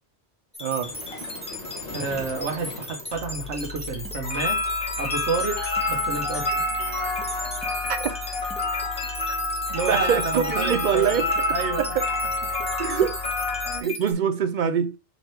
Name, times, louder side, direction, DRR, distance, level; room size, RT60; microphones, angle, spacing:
sound 1, 0.5-14.1, left 1 dB, 5° left, 1.1 m, -36 dB
voice 1, 0.6-0.9 7.9-8.1 9.9-11.3 11.8-11.9 12.8-13.2 13.8-15.0, right 8 dB, 55° right, 0.5 m, -24 dB
sound 2, 0.8-5.1, left 2 dB, 40° left, 1.1 m, -42 dB
voice 2, 1.9-4.6 5.0-5.6 5.9-6.5 9.7-11.1 11.5-11.8 13.6-14.0, right 5 dB, 90° right, 1.3 m, -29 dB
sound 3, 3.1-13.8, left 2 dB, 60° left, 1.4 m, -28 dB
3.9 x 3.1 x 4.4 m
omnidirectional pair, 1.2 m